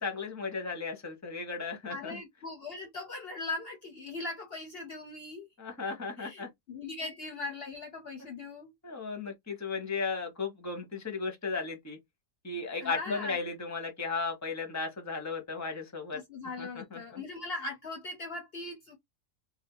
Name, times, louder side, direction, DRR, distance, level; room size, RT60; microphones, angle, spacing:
voice 1, 0.0-2.2 5.6-6.5 8.8-12.0 12.4-16.2 16.6-17.2, left 4 dB, 15° left, 0.9 m, -35 dB
voice 2, 1.9-5.5 6.2-8.7 12.8-13.4 16.1-19.0, left 3 dB, 55° left, 0.8 m, -40 dB
2.7 x 2.4 x 3.8 m
omnidirectional pair, 1.5 m